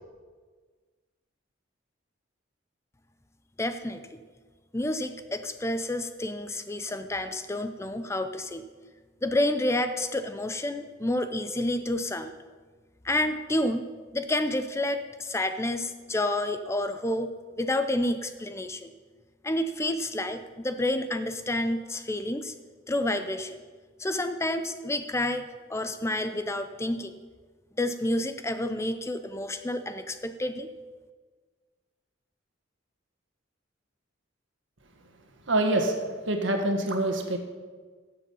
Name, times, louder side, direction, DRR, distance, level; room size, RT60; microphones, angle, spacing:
voice 1, 3.6-4.2 4.7-8.7 9.2-12.3 13.0-18.9 19.4-22.5 22.9-23.6 24.0-27.1 27.8-30.7, left 1 dB, 15° left, 9 dB, 0.5 m, -29 dB
voice 2, 35.5-37.4, right 1 dB, 70° right, 4 dB, 1.6 m, -26 dB
14.5 x 7.6 x 5.5 m, 1.5 s
head